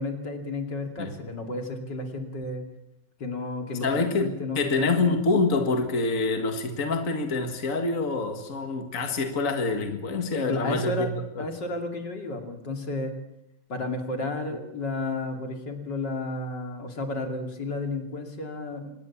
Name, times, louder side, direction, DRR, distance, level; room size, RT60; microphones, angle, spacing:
voice 1, 0.0-2.6 3.2-5.0 10.3-13.1 13.7-18.9, left 2 dB, 75° left, 4 dB, 3.4 m, -32 dB
voice 2, 3.8-11.4 14.5-14.6, left 3 dB, 45° left, 5 dB, 2.2 m, -26 dB
26.0 x 20.0 x 7.3 m, 0.81 s
omnidirectional pair, 1.9 m